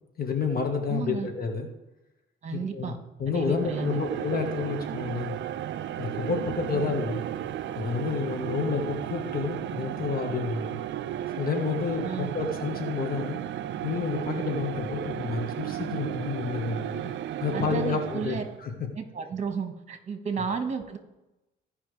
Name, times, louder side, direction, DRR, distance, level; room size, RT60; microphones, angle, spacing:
voice 1, 0.2-1.7 2.5-2.9 3.2-5.3 6.0-7.2 7.7-10.7 11.3-13.4 13.8-17.0 17.4-18.7, left 5 dB, 50° left, 4 dB, 1.5 m, -30 dB
voice 2, 0.9-1.3 2.4-3.0 3.3-3.9 6.7-6.9 12.0-12.3 17.0-17.1 17.5-18.4 18.9-21.0, right 6 dB, 35° right, 6 dB, 1.6 m, -33 dB
sound 1, 3.3-18.6, right 11 dB, 65° right, 0.5 m, -34 dB
16.0 x 5.5 x 3.3 m, 0.96 s
cardioid pair, 90°, 20 cm